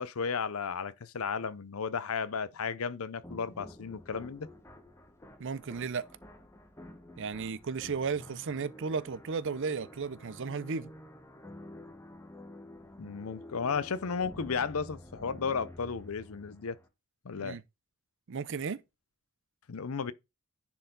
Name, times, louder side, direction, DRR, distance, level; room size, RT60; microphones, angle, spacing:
voice 1, 0.0-4.5 13.0-16.8 17.2-17.6 19.7-20.1, left 5 dB, 75° left, 0.6 m, -34 dB
sound 1, 3.2-16.9, left 1 dB, 15° left, 1.2 m, -50 dB
voice 2, 5.4-6.1 7.2-10.9 17.4-17.6 18.3-18.8, right 5 dB, 60° right, 0.5 m, -34 dB
10.0 x 4.5 x 3.9 m
head